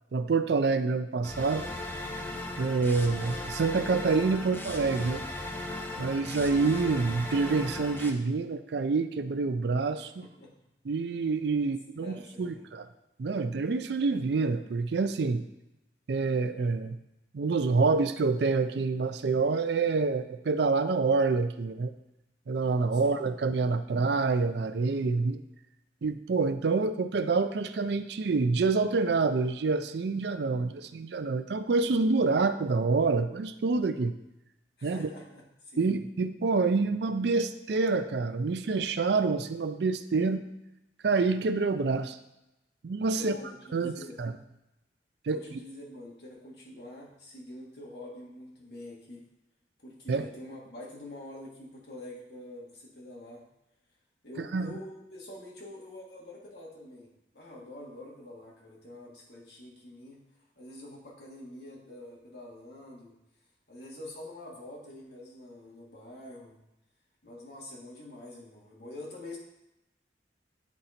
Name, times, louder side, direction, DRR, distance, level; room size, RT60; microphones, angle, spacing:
voice 1, 0.1-1.7 2.6-5.3 6.0-10.3 10.9-12.9 13.2-15.4 16.1-17.0 17.3-21.9 22.5-25.4 26.0-34.1 34.8-35.1 35.8-40.5 41.0-42.2 42.8-43.4 43.7-44.3 45.3-45.4 50.1-50.3 54.4-54.7, right 4 dB, 65° right, 10 dB, 0.4 m, -27 dB
sound 1, 1.2-8.1, left 2 dB, 10° left, 0.7 m, -37 dB
voice 2, 10.2-10.5 11.6-12.7 22.9-23.1 34.8-35.9 43.2-44.2 45.3-49.2 49.8-53.4 54.2-57.1 57.3-60.2 60.6-63.1 63.7-66.6 67.2-69.4, left 1 dB, 60° left, -3 dB, 1.9 m, -46 dB
9.4 x 3.9 x 4.3 m, 0.91 s
head